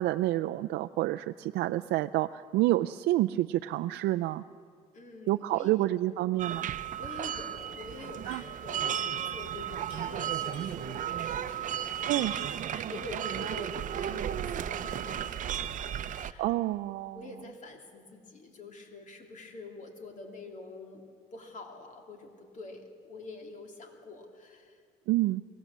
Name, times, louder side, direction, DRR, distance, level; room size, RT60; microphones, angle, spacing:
voice 1, 0.0-4.4 5.3-6.7 8.3-8.4 12.1-12.3 16.4-17.2 25.1-25.4, right 16 dB, 80° right, 8 dB, 0.5 m, -28 dB
voice 2, 4.9-5.8 7.0-16.5 17.1-21.0 21.3-24.8, left 3 dB, 50° left, 3 dB, 3.2 m, -46 dB
sound 1, 6.4-16.3, right 10 dB, 50° right, 0.7 m, -34 dB
sound 2, 8.3-8.6 8.8-8.9 9.8-11.0 12.2-12.7 13.2-13.3 14.1-14.4, left 1 dB, 35° left, 7.8 m, -52 dB
23.5 x 17.0 x 7.3 m, 2.2 s
cardioid pair, 110°, 17 cm